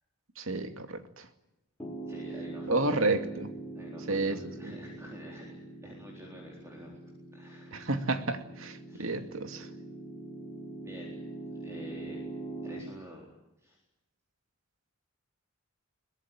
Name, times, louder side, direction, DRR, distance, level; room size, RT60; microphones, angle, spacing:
voice 1, 0.4-1.2 2.7-3.5 4.1-4.4 4.6-4.7 7.7-9.7, right 2 dB, 65° right, 7 dB, 2.4 m, -31 dB
Piano, 1.8-12.8, right 2 dB, 10° left, 5.6 m, -43 dB
voice 2, 2.1-3.1 3.7-6.9 7.3-7.8 8.9-9.1 10.8-11.2 11.6-12.2 12.6-13.3 13.6-13.8, equal, 15° right, -1 dB, 4.1 m, -48 dB
22.5 x 21.0 x 9.7 m, 0.96 s
head